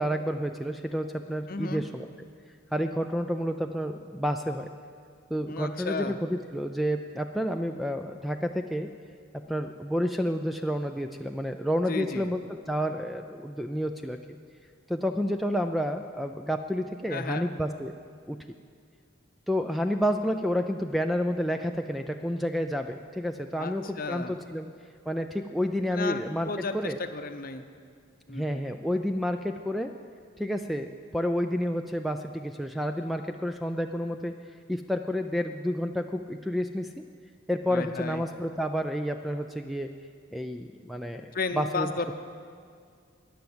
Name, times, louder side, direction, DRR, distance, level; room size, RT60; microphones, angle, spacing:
voice 1, 0.0-2.1 2.7-4.7 5.3-8.9 9.5-14.2 14.9-18.0 18.3-18.4 19.5-24.7 25.1-27.0 28.3-29.9 30.4-34.3 34.7-37.0 37.5-39.9 40.3-41.9, equal, ahead, 6 dB, 0.3 m, -30 dB
voice 2, 1.5-1.8 5.5-6.2 11.9-12.3 17.1-17.5 23.6-24.4 25.9-27.6 28.3-28.6 37.7-38.2 41.3-42.1, left 3 dB, 45° left, 8 dB, 0.7 m, -33 dB
12.5 x 10.5 x 7.9 m, 2.2 s
head